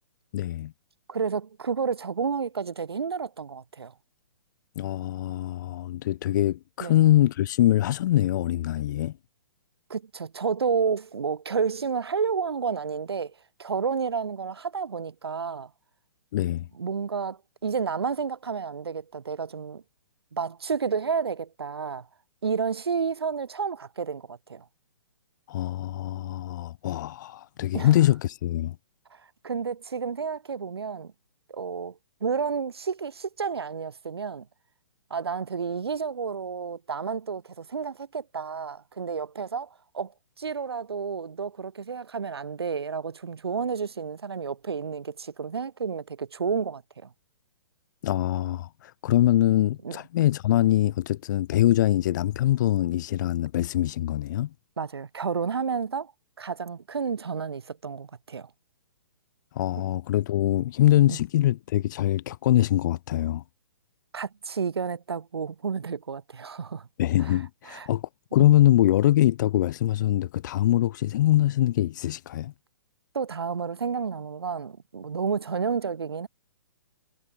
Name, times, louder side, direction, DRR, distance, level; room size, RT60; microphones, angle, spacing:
voice 1, 0.3-0.7 4.8-9.1 16.3-16.7 25.5-28.8 48.0-54.5 59.5-63.4 67.0-72.5, left 13 dB, 45° left, 2.4 m, -23 dB
voice 2, 1.1-3.9 6.8-7.0 9.9-13.3 13.6-15.7 16.8-19.8 20.3-22.1 22.4-24.6 27.7-27.9 29.1-29.2 29.4-31.1 31.5-34.5 35.1-39.7 39.9-40.1 40.4-47.1 49.8-50.0 54.8-56.1 56.4-58.5 61.1-61.2 64.1-66.9 67.2-67.4 67.7-67.9 68.4-68.5 73.1-76.3, right 6 dB, 70° right, 7.1 m, -30 dB
figure-of-eight pair, 125°, 14 cm